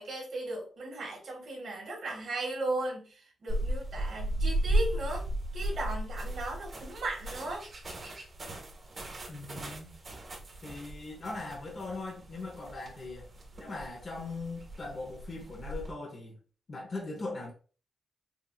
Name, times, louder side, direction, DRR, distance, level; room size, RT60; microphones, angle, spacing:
voice 1, 0.0-5.2 5.5-7.6, right 2 dB, 55° right, 1.9 m, -36 dB
sound 1, 3.5-15.9, right 1 dB, 35° right, 1.2 m, -36 dB
voice 2, 9.3-9.9 10.6-13.3 13.6-16.4 16.7-17.5, left 3 dB, 35° left, 1.0 m, -40 dB
5.7 x 2.6 x 2.4 m
wide cardioid pair, 175°, 0 cm